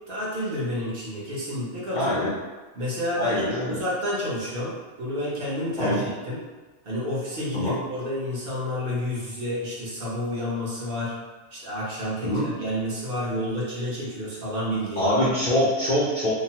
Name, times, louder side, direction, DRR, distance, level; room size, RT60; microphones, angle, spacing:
voice 1, 0.1-2.1 2.7-3.4 3.7-6.4 6.8-11.2 11.5-15.1, left 1 dB, 50° right, -7 dB, 0.8 m, -30 dB
voice 2, 1.9-2.3 3.1-3.8 5.8-6.0 7.5-7.8 12.2-12.4 15.0-16.3, left 1 dB, 70° left, -8 dB, 0.4 m, -24 dB
2.8 x 2.1 x 2.8 m, 1.3 s
omnidirectional pair, 1.5 m